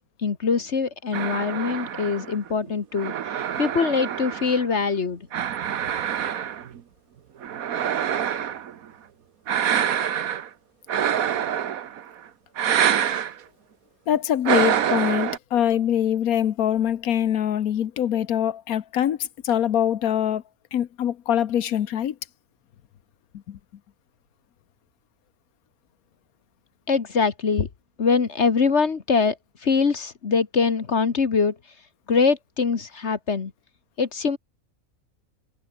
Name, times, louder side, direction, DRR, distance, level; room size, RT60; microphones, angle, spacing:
voice 1, 0.2-5.3 26.9-27.7 28.0-31.6 32.1-33.5 34.0-34.4, left 5 dB, 50° left, 1.7 m, -23 dB
sound 1, 1.1-4.8 5.3-6.8 7.4-8.7 9.5-10.5 10.9-12.1 12.6-13.3 14.5-15.4, right 9 dB, 75° right, 1.5 m, -26 dB
voice 2, 14.1-20.4 20.7-22.2 23.5-23.6, left 10 dB, 80° left, 1.4 m, -23 dB
omnidirectional pair, 1.5 m